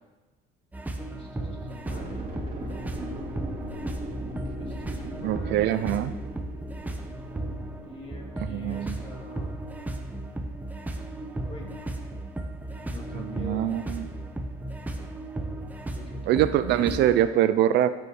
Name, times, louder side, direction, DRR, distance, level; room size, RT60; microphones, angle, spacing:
sound 1, 0.7-17.3, right 1 dB, 10° right, 0.8 m, -35 dB
voice 1, 1.1-2.1 4.5-5.6 7.9-9.5 11.5-11.7 12.8-13.7 15.9-16.5, left 2 dB, 30° left, -1 dB, 2.4 m, -44 dB
sound 2, 1.8-9.6 9.9-10.0, equal, 30° right, 2.2 m, -40 dB
voice 2, 5.2-6.1 8.4-9.0 13.1-14.1 16.3-17.9, right 12 dB, 60° right, 13 dB, 0.4 m, -24 dB
14.5 x 5.4 x 4.8 m, 1.2 s
cardioid pair, 140°, 20 cm